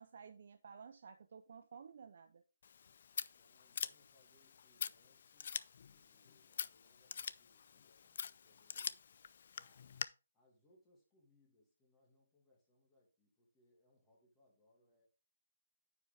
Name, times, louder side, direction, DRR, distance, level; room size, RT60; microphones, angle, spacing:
voice 1, 0.0-2.4, right 6 dB, 55° right, 0.6 m, -54 dB
Scissors, 2.6-10.0, left 7 dB, 50° left, 0.4 m, -46 dB
voice 2, 3.1-5.6 5.9-9.0 9.5-10.1 10.3-15.1, left 1 dB, 15° left, 2.3 m, -74 dB
9.4 x 5.2 x 3.4 m
figure-of-eight pair, 155°, 0 cm